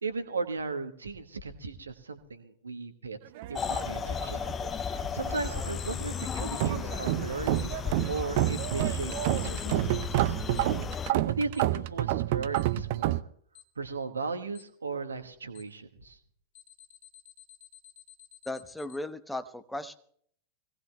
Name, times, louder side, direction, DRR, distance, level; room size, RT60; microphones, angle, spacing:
voice 1, 0.0-3.2 3.5-4.4 4.9-7.7 8.1-10.4 11.1-13.2 13.8-16.2, right 4 dB, 75° right, 7 dB, 1.2 m, -36 dB
sound 1, 3.4-4.7 4.9-5.7 6.1-13.2, right 16 dB, 50° right, 0.5 m, -29 dB
sound 2, 3.6-11.1, left 7 dB, 20° left, 0.5 m, -34 dB
Alarm, 7.6-7.7 8.6-8.7 9.6-9.7 10.6-10.7 11.6-11.7 12.6-12.7 13.6-13.7 14.6-14.7 15.6-15.7 16.6-19.0, left 12 dB, 50° left, 1.2 m, -53 dB
voice 2, 18.5-19.9, left 1 dB, 5° left, 10 dB, 0.9 m, -36 dB
24.5 x 17.5 x 2.2 m, 0.63 s
figure-of-eight pair, 90°, 0 cm